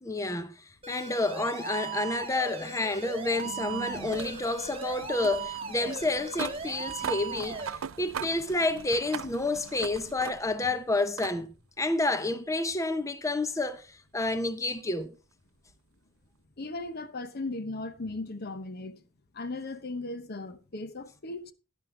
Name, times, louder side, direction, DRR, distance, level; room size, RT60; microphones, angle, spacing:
voice 1, 0.0-11.5 11.8-15.1, left 2 dB, 15° left, 0.8 m, -30 dB
sound 1, 0.8-7.7, right 5 dB, 30° right, 1.4 m, -38 dB
sound 2, 1.8-10.7 11.2-11.4 12.7-12.8 15.7-15.8, right 7 dB, 75° right, 0.5 m, -41 dB
voice 2, 16.6-19.0 19.3-21.5, left 2 dB, 50° left, 0.9 m, -37 dB
12.0 x 10.5 x 3.8 m
head